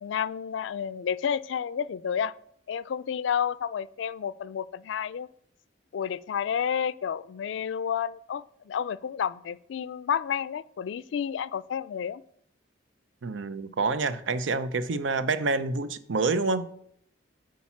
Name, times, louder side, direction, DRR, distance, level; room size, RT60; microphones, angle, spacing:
voice 1, 0.0-2.3 2.7-5.3 5.9-12.2, left 8 dB, 75° left, 0.3 m, -30 dB
voice 2, 13.2-16.7, right 3 dB, 85° right, 0.6 m, -27 dB
8.5 x 4.7 x 5.8 m
head